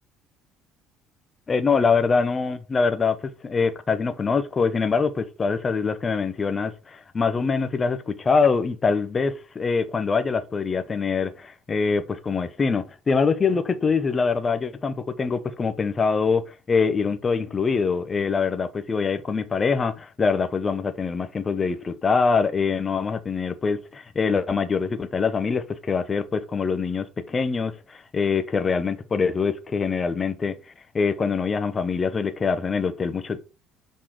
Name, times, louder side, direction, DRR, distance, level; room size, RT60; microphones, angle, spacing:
voice 1, 1.5-30.6 30.9-33.4, left 5 dB, 35° left, 1.0 m, -24 dB
6.1 x 4.2 x 5.0 m
hypercardioid pair, 60°, 0 cm